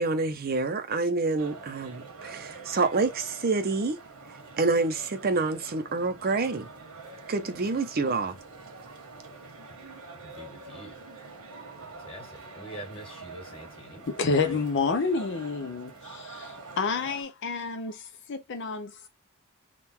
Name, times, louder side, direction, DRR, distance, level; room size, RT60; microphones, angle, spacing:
voice 1, 0.0-4.0 4.6-6.7 7.3-8.4, right 3 dB, 45° right, 0.6 m, -27 dB
sound 1, 1.4-17.2, right 3 dB, 85° right, 1.4 m, -46 dB
voice 2, 10.2-10.9 11.9-14.7, right 1 dB, 25° left, 1.8 m, -45 dB
voice 3, 14.1-19.1, left 4 dB, 55° left, 0.6 m, -29 dB
3.7 x 2.4 x 4.3 m
head